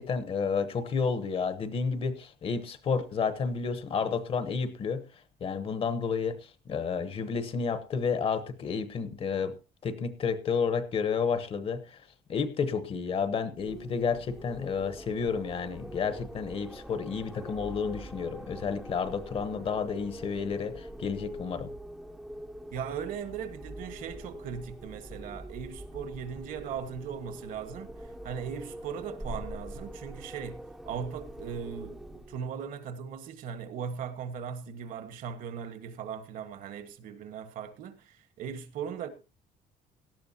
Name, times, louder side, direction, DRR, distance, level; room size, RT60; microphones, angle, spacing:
voice 1, 0.0-9.5 9.8-12.0 12.3-21.7, left 5 dB, 35° left, 1.0 m, -31 dB
Wind, 13.5-32.5, right 1 dB, ahead, 0.7 m, -44 dB
voice 2, 22.7-27.9 28.2-39.1, right 7 dB, 55° right, 1.4 m, -38 dB
18.0 x 13.0 x 2.8 m
cardioid pair, 180°, 17 cm